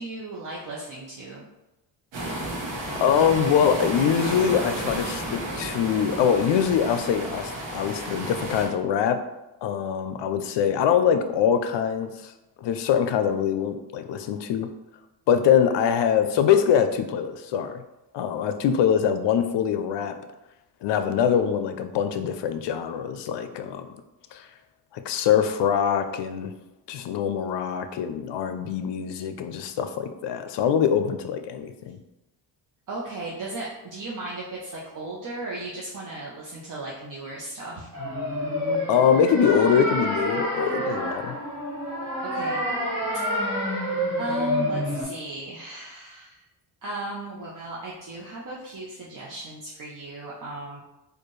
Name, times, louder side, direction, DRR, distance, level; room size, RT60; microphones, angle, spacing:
voice 1, 0.0-1.4 32.9-37.9 42.3-42.6 43.2-43.4 44.2-46.4 46.8-50.8, right 2 dB, 45° right, -5 dB, 0.8 m, -36 dB
sound 1, 2.1-8.7, right 1 dB, 75° right, 1.1 m, -32 dB
voice 2, 3.0-9.2 9.6-12.3 12.6-14.7 15.3-17.8 18.1-20.1 20.8-23.9 24.3-24.5 24.9-26.5 26.9-32.0 38.9-41.4, left 8 dB, 65° left, 9 dB, 0.5 m, -23 dB
sound 2, 37.9-45.0, equal, 25° right, 1.4 m, -28 dB
4.2 x 2.5 x 3.2 m, 0.95 s
cardioid pair, 85°, 45 cm